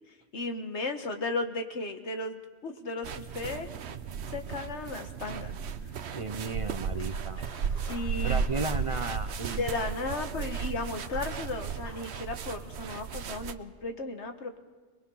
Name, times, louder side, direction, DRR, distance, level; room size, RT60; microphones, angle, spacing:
voice 1, 0.3-3.7 4.3-5.5 7.9-8.5 9.6-14.6, left 3 dB, 90° left, 6 dB, 1.8 m, -35 dB
sound 1, 3.0-13.5, right 6 dB, 75° right, 1.1 m, -35 dB
voice 2, 6.1-7.4 8.2-9.6 10.1-10.5, right 3 dB, 35° right, 10 dB, 0.7 m, -35 dB
sound 2, 6.9-12.1, equal, 45° left, 7.4 m, -53 dB
22.0 x 21.5 x 5.6 m, 1.4 s
omnidirectional pair, 1.1 m